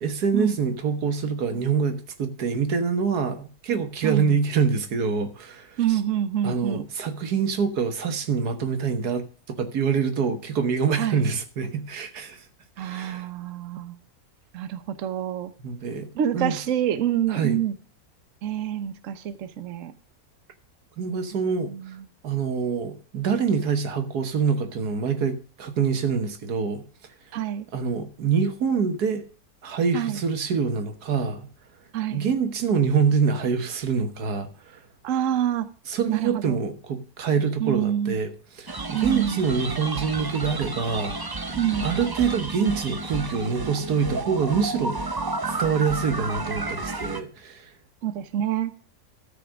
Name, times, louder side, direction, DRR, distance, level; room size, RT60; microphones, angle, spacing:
voice 1, 0.0-6.0 6.4-9.2 9.6-12.4 12.8-13.3 15.6-16.6 17.3-17.6 21.0-21.7 22.2-26.8 27.7-29.3 29.6-31.5 32.1-34.8 35.9-41.2 41.8-45.0 45.6-47.7, right 6 dB, 85° right, 1.8 m, -25 dB
voice 2, 4.0-4.4 5.8-6.8 11.0-11.2 12.8-14.0 14.5-15.5 16.1-17.8 18.4-19.9 21.3-22.1 27.3-27.7 29.9-30.2 31.9-32.3 35.0-35.7 36.1-36.6 37.6-38.2 38.9-39.4 41.6-41.9 48.0-48.7, right 10 dB, 60° right, 1.2 m, -27 dB
sound 1, 38.7-47.2, right 3 dB, 25° right, 0.4 m, -32 dB
13.0 x 6.0 x 6.2 m
omnidirectional pair, 1.6 m